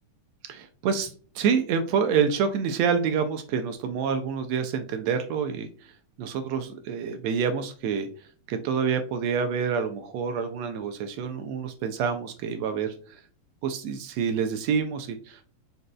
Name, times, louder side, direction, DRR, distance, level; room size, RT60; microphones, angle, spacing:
voice 1, 0.4-13.2 13.6-15.4, right 6 dB, 80° right, 7 dB, 1.6 m, -27 dB
5.0 x 4.0 x 2.2 m, 0.41 s
omnidirectional pair, 3.4 m